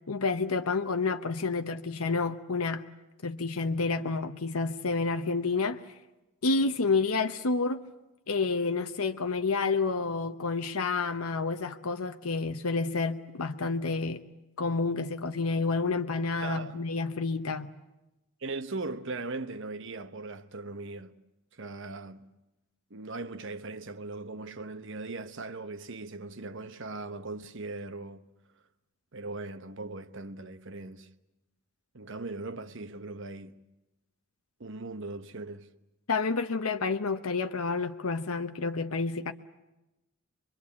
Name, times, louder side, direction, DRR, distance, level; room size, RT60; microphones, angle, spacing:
voice 1, 0.1-2.8 3.2-5.8 6.4-7.8 8.3-14.2 14.6-17.7 36.1-39.3, left 4 dB, 85° left, 0.9 m, -29 dB
voice 2, 16.4-16.8 18.4-21.2 21.5-22.3 22.9-28.3 29.1-31.1 31.9-33.6 34.6-35.7, right 3 dB, 60° right, 1.1 m, -39 dB
24.5 x 23.0 x 8.5 m
head